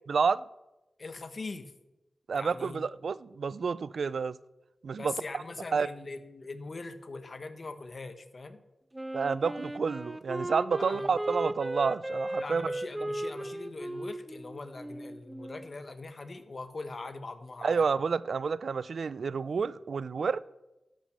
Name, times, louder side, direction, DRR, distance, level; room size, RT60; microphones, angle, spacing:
voice 1, 0.1-0.4 2.3-4.4 4.8-5.1 5.7-5.9 9.1-12.6 17.6-20.4, right 5 dB, 75° right, 0.3 m, -29 dB
voice 2, 1.0-1.7 2.3-2.9 5.0-8.6 10.8-11.2 12.4-17.8, left 3 dB, 55° left, 1.2 m, -41 dB
Wind instrument woodwind instrument, 8.9-15.7, right 1 dB, 15° right, 0.5 m, -36 dB
12.5 x 6.2 x 6.6 m
cardioid pair, 50°, 0 cm